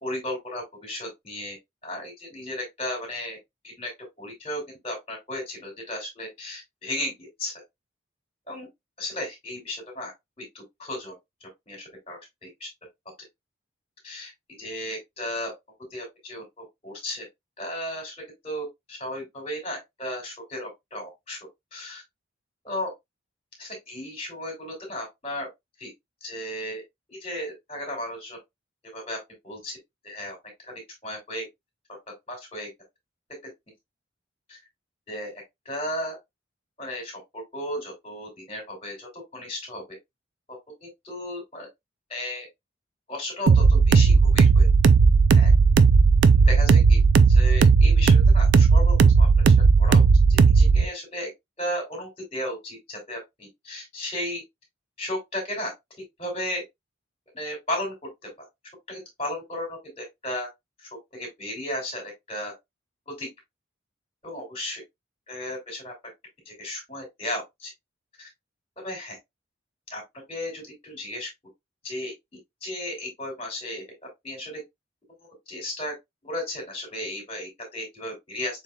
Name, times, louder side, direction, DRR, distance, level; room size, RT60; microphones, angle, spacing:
voice 1, 0.0-1.6 1.8-3.4 3.6-3.9 4.2-7.5 8.5-8.7 9.0-10.1 10.4-11.1 11.7-11.8 12.1-12.7 14.0-14.3 14.6-15.5 15.9-17.2 17.6-18.1 18.4-21.4 21.7-22.0 22.6-22.9 23.6-25.5 25.8-25.9 26.2-26.8 27.1-28.4 28.9-29.2 29.4-29.8 30.0-30.4 30.6-30.7 31.0-31.5 32.3-32.7 34.5-34.6 35.1-35.3 35.6-36.2 36.8-39.8 40.8-41.7 42.1-42.5 43.1-44.7 45.3-45.5 46.4-47.0 47.3-50.0 50.3-51.3 51.6-54.4 55.0-55.7 56.2-56.6 57.3-57.9 58.2-58.3 58.9-60.5 60.8-62.5 63.1-63.3 64.2-64.8 65.3-65.9 66.5-67.7 68.2-68.3 68.8-69.2 69.9-70.0 70.3-71.3 71.8-72.1 72.6-73.8 74.2-74.6 75.5-75.9 76.2-78.6, left 1 dB, 30° left, 2.6 m, -34 dB
sound 1, 43.5-50.9, right 5 dB, 65° right, 0.4 m, -16 dB
6.8 x 3.3 x 2.3 m
head